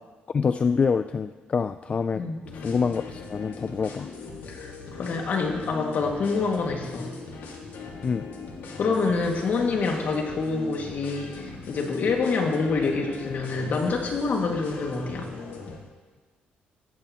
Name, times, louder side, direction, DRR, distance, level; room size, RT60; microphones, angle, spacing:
voice 1, 0.3-2.2 2.6-4.1 8.0-8.3, left 5 dB, 35° left, 11 dB, 0.3 m, -26 dB
sound 1, 2.4-15.8, left 4 dB, 85° left, 2.3 m, -40 dB
voice 2, 5.0-7.1 8.7-15.3, left 4 dB, 55° left, 1 dB, 2.2 m, -26 dB
17.0 x 13.5 x 3.1 m, 1.4 s
cardioid pair, 115°, 4 cm